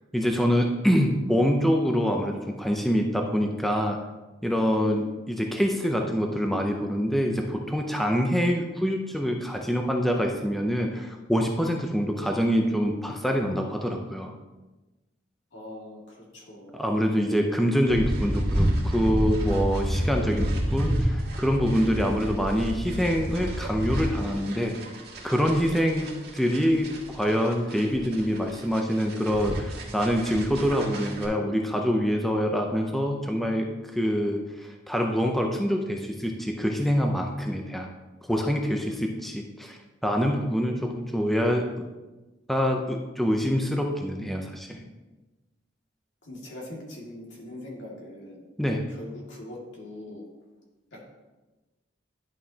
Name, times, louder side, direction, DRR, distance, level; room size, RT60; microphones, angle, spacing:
voice 1, 0.1-4.0 4.4-14.3 16.7-24.7 25.2-33.7 33.9-37.9 38.3-41.8 42.5-44.8 48.6-48.9, equal, ahead, 1 dB, 0.5 m, -25 dB
voice 2, 4.7-5.1 15.5-16.8 46.2-48.5 48.9-50.2, left 1 dB, 75° left, -3 dB, 2.1 m, -42 dB
sound 1, 17.9-31.3, equal, 60° right, 1.7 m, -30 dB
10.5 x 5.6 x 2.8 m, 1.1 s
head